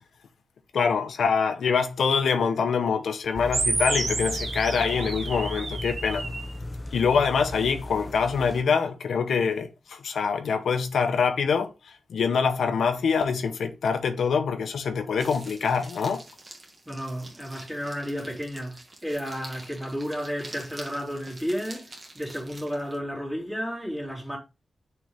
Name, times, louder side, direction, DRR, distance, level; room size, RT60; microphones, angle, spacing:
voice 1, 0.7-6.2 6.9-11.7 12.1-16.2, left 6 dB, 90° left, 0.8 m, -25 dB
sound 1, 3.3-8.6, left 1 dB, 20° left, 0.5 m, -36 dB
sound 2, 3.5-6.5, right 3 dB, 65° right, 1.8 m, -30 dB
sound 3, 15.2-23.0, right 2 dB, 30° right, 1.7 m, -46 dB
voice 2, 16.9-24.4, equal, 5° right, 2.6 m, -32 dB
6.2 x 4.6 x 3.5 m
wide cardioid pair, 130°, 0 cm